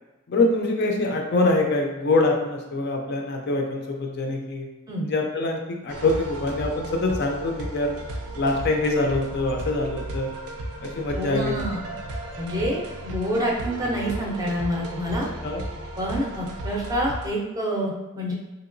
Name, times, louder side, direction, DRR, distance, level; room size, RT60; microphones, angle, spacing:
voice 1, 0.3-4.7 5.0-7.9 8.3-10.3 10.8-11.6 15.4-15.6, left 2 dB, 45° left, 2 dB, 0.4 m, -24 dB
sound 1, 5.9-17.3, right 1 dB, 80° right, 0.5 m, -35 dB
voice 2, 11.2-11.8 12.4-15.3 16.0-18.3, equal, 15° right, -2 dB, 0.5 m, -27 dB
3.7 x 2.8 x 2.5 m, 1.1 s
head